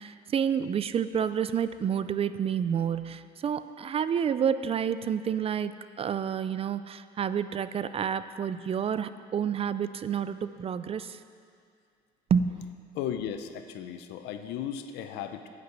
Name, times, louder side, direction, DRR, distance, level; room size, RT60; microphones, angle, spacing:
voice 1, 0.0-11.2 12.3-12.6, right 8 dB, 35° right, 13 dB, 0.4 m, -29 dB
voice 2, 12.9-15.5, left 9 dB, 90° left, 8 dB, 0.7 m, -35 dB
9.1 x 6.7 x 7.9 m, 2.3 s
cardioid pair, 110°, 17 cm